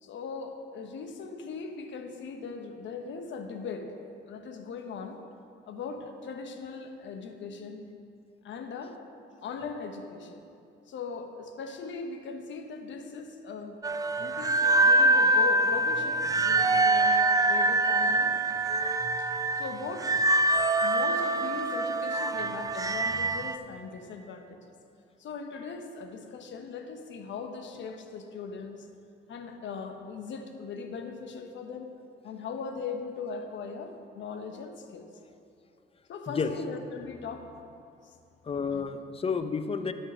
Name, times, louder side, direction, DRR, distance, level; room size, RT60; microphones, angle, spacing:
voice 1, 0.0-4.0 4.3-5.2 5.7-7.9 8.4-9.0 9.4-10.4 10.9-13.8 14.2-18.3 19.6-20.1 20.8-24.7 25.2-28.9 29.3-31.9 32.2-35.1 36.1-37.7 38.0-38.2 38.7-38.8, left 5 dB, 70° left, 6 dB, 1.0 m, -39 dB
sound 1, 13.8-23.6, right 2 dB, 20° right, 0.4 m, -25 dB
voice 2, 38.4-39.9, left 5 dB, 30° left, 10 dB, 0.6 m, -30 dB
11.0 x 5.5 x 6.2 m, 2.5 s
cardioid pair, 90°, 20 cm